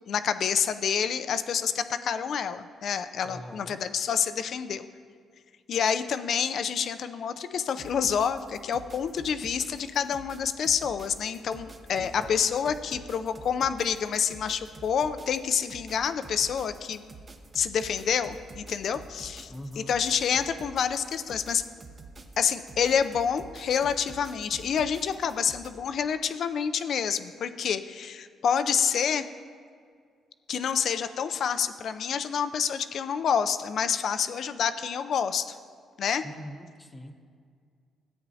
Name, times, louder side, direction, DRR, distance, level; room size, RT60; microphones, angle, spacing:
voice 1, 0.1-4.9 5.7-17.0 17.5-21.6 22.4-29.2 30.5-35.6 36.0-36.2, left 7 dB, 65° left, 11 dB, 0.4 m, -28 dB
voice 2, 3.2-3.8 11.9-12.4 19.5-19.9 36.2-37.1, equal, 15° left, 6 dB, 0.8 m, -42 dB
sound 1, 7.7-25.7, right 3 dB, 35° right, 0.9 m, -47 dB
13.5 x 8.8 x 2.8 m, 2.1 s
cardioid pair, 90°, 0 cm